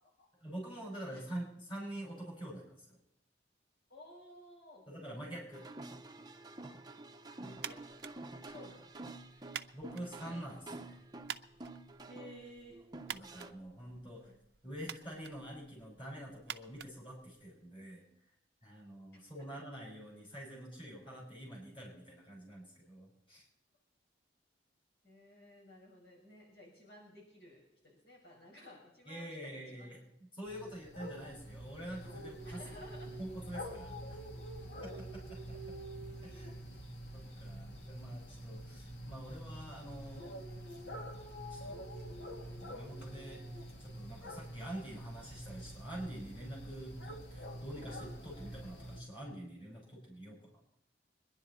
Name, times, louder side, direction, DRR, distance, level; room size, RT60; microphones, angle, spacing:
voice 1, 0.4-3.0 4.9-5.7 9.3-9.4 9.7-11.0 13.1-14.3 14.6-18.0 18.6-23.4 29.1-32.6 33.0-34.2 34.8-35.5 36.2-36.5 37.1-40.3 41.5-41.8 42.5-50.6, right 1 dB, 30° left, -2 dB, 6.3 m, -46 dB
voice 2, 3.9-4.9 7.4-7.8 8.4-8.9 12.1-12.8 19.1-19.5 25.0-29.9 32.4-33.1 35.5-35.6 36.2-36.9, left 1 dB, 65° left, -3 dB, 5.4 m, -55 dB
sound 1, 5.5-13.5, right 2 dB, 20° right, 0.7 m, -49 dB
sound 2, 7.6-17.8, right 9 dB, 60° right, 0.6 m, -50 dB
sound 3, 30.4-49.0, equal, 80° left, 2.2 m, -46 dB
24.0 x 11.0 x 4.2 m, 0.75 s
head